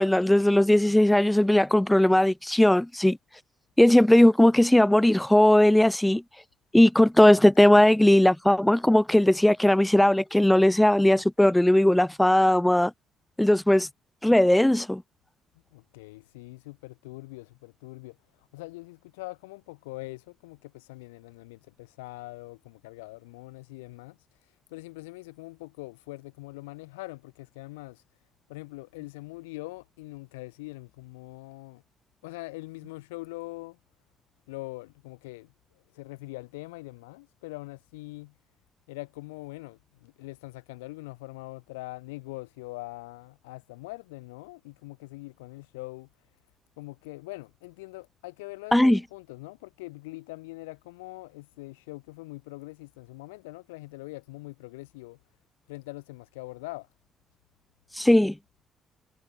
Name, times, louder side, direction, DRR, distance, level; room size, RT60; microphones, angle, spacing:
voice 1, 0.0-3.2 3.8-6.2 6.7-12.9 13.4-13.9 14.2-15.0 48.7-49.0 58.0-58.3, left 1 dB, 5° left, 1.4 m, -19 dB
voice 2, 15.7-24.2 24.7-28.0 28.5-31.8 32.2-33.8 34.5-35.5 35.9-38.4 38.9-46.1 46.8-55.2 55.7-56.9, left 22 dB, 80° left, 3.0 m, -42 dB
figure-of-eight pair, 45°, 0 cm